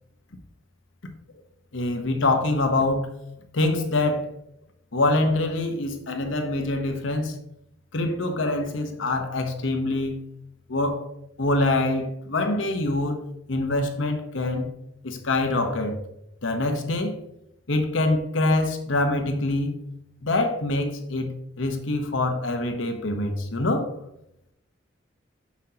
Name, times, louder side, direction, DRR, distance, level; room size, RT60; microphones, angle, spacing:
voice 1, 1.7-3.1 3.5-4.3 4.9-7.3 7.9-10.2 10.7-11.1 11.4-13.2 13.5-14.7 15.0-16.0 16.4-17.2 17.7-19.7 20.2-21.3 21.6-23.9, left 2 dB, 80° left, 1.0 m, -25 dB
7.2 x 5.8 x 2.8 m
head